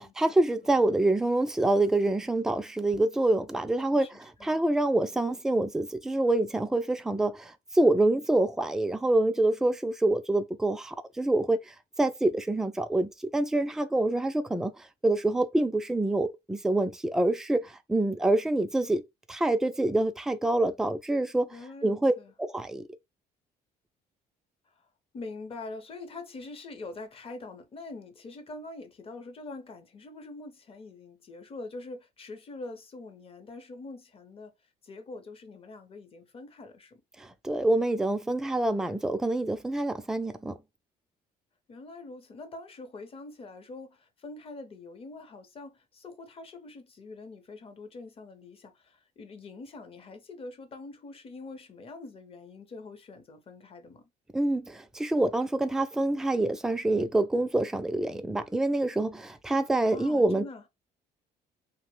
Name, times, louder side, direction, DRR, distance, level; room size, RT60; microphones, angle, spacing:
voice 1, 0.0-19.0 19.3-21.6 21.8-22.1 22.4-22.8 37.2-40.6 54.3-60.5, right 2 dB, 5° right, 0.3 m, -26 dB
voice 2, 21.5-22.3 25.1-34.5 34.8-37.0 41.7-54.0 59.8-60.6, left 3 dB, 35° left, 0.7 m, -44 dB
2.8 x 2.1 x 3.0 m
cardioid pair, 110°, 17 cm